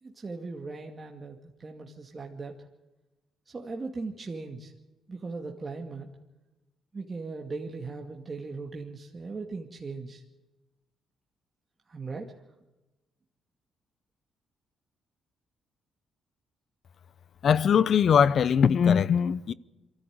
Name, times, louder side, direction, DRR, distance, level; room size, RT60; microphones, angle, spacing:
voice 1, 0.0-2.6 3.5-4.7 5.1-6.1 6.9-10.2 11.9-12.3, right 3 dB, 30° right, 2.3 m, -38 dB
voice 2, 17.4-19.5, left 7 dB, 55° left, 0.7 m, -21 dB
23.5 x 14.5 x 9.5 m
cardioid pair, 90°, 0 cm